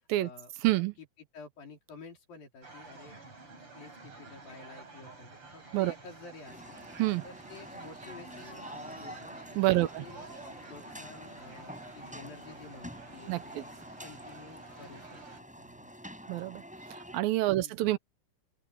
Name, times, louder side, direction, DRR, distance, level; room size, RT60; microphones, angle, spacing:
voice 1, 0.2-3.2 3.6-9.4 9.7-15.2 15.6-15.9 17.5-18.0, left 4 dB, 75° left, 6.4 m, -51 dB
sound 1, 2.6-15.4, right 3 dB, 35° right, 7.5 m, -51 dB
sound 2, 6.5-17.2, equal, ahead, 6.4 m, -47 dB
voice 2, 9.6-10.0 13.3-13.4 16.3-16.6 17.1-18.0, right 17 dB, 80° right, 2.6 m, -27 dB
open air
omnidirectional pair, 4.2 m